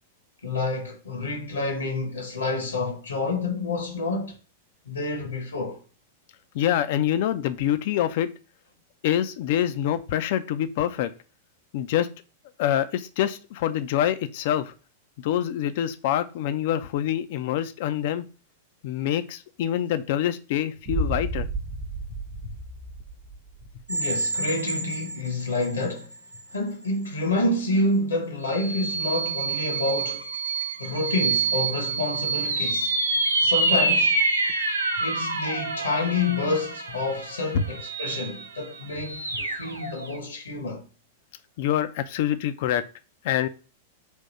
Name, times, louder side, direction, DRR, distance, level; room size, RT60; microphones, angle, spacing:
voice 1, 0.4-4.4 4.9-5.8 23.9-26.1 26.5-30.3 30.8-32.9 33.4-34.2 35.0-40.8, left 2 dB, 75° left, 1.0 m, -28 dB
voice 2, 6.5-8.3 9.0-11.1 11.7-12.1 12.6-14.7 15.2-18.3 18.8-21.5 22.4-22.5 37.5-37.6 41.6-42.8 43.2-43.5, left 11 dB, 50° left, 0.4 m, -25 dB
sound 1, 20.8-23.8, right 2 dB, 40° right, 1.0 m, -32 dB
sound 2, 23.9-25.8 26.3-26.4 28.4-40.2, right 3 dB, 85° right, 0.6 m, -27 dB
3.6 x 2.7 x 4.0 m
figure-of-eight pair, 95°, 0 cm